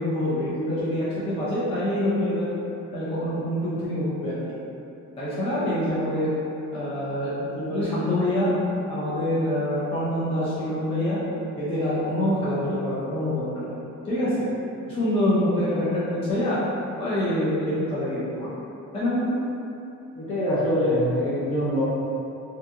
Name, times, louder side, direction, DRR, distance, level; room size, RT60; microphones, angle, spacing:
voice 1, 0.0-2.5 2.9-4.4 5.2-6.4 6.7-8.5 8.9-11.2 11.6-13.8 14.0-14.3 14.9-16.6 17.0-18.5 18.9-19.4, left 1 dB, 20° left, -10 dB, 0.5 m, -25 dB
voice 2, 20.1-21.8, left 1 dB, 45° left, -7 dB, 0.8 m, -24 dB
2.7 x 2.6 x 2.4 m, 2.8 s
cardioid pair, 110°, 31 cm